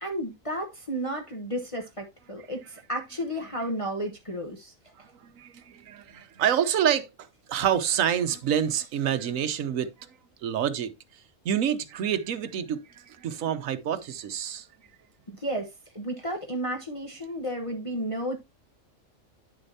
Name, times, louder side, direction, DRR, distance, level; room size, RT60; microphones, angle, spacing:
voice 1, 0.0-4.7 15.3-15.7 15.9-18.4, right 1 dB, 25° left, 1.0 m, -32 dB
voice 2, 5.2-7.1 7.5-10.1 10.4-10.9 11.4-14.7, right 9 dB, 85° right, 1.2 m, -27 dB
9.7 x 6.5 x 2.7 m
omnidirectional pair, 1.4 m